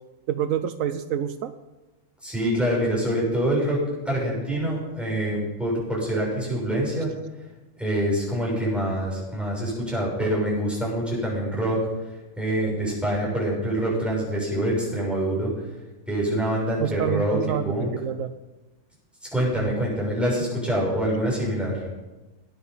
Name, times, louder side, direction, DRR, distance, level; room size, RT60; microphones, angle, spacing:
voice 1, 0.3-1.5 16.8-17.7 18.0-18.3, right 10 dB, 80° right, 11 dB, 1.1 m, -27 dB
voice 2, 2.2-3.8 4.0-7.1 7.8-11.8 12.4-15.5 16.1-17.4 17.6-17.9 19.3-21.8, right 1 dB, ahead, -5 dB, 6.9 m, -25 dB
19.5 x 10.0 x 5.5 m, 1.1 s
omnidirectional pair, 1.4 m